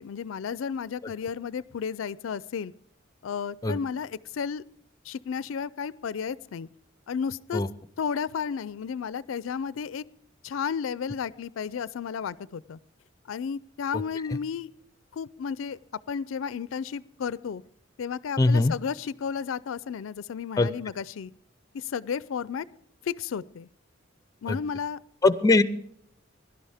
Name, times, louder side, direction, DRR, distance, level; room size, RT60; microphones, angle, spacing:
voice 1, 0.0-2.7 3.2-4.6 5.0-6.7 7.1-7.6 8.0-10.0 10.4-12.8 13.3-14.7 15.1-15.8 16.1-17.6 18.0-21.3 21.7-22.7 23.0-23.7 24.4-25.0, left 6 dB, 80° left, 20 dB, 0.4 m, -33 dB
voice 2, 18.4-18.7 20.6-20.7 24.5-24.6 25.2-25.6, left 2 dB, 20° left, 15 dB, 0.5 m, -21 dB
17.0 x 11.5 x 3.5 m, 0.70 s
head